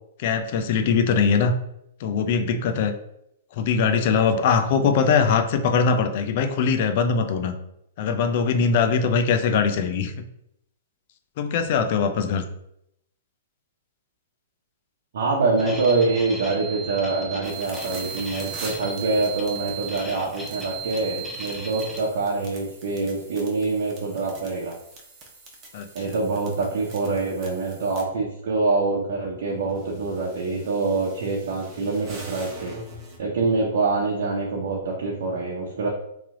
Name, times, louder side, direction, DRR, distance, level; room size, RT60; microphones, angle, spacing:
voice 1, 0.2-1.5 2.0-2.9 3.5-7.5 8.0-10.1 11.4-12.4 25.7-25.9, left 5 dB, 50° left, 7 dB, 0.5 m, -21 dB
voice 2, 15.1-24.7 25.9-32.7 33.2-35.9, right 3 dB, 70° right, -2 dB, 0.8 m, -25 dB
sound 1, 15.6-22.0, right 4 dB, ahead, 0.8 m, -36 dB
sound 2, 17.4-28.0 29.5-33.2, right 2 dB, 30° right, 1.0 m, -44 dB
3.2 x 2.9 x 3.7 m, 0.78 s
hypercardioid pair, 130°, 0 cm